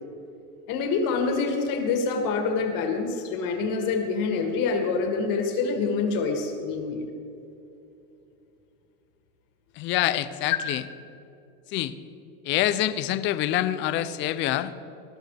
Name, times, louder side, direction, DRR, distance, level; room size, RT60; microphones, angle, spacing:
voice 1, 0.7-7.0, left 4 dB, 50° left, 3 dB, 2.3 m, -26 dB
voice 2, 9.8-10.8 11.7-11.9 12.4-14.7, left 13 dB, 30° left, 13 dB, 0.4 m, -26 dB
20.5 x 12.5 x 3.4 m, 2.7 s
supercardioid pair, 155°, 42 cm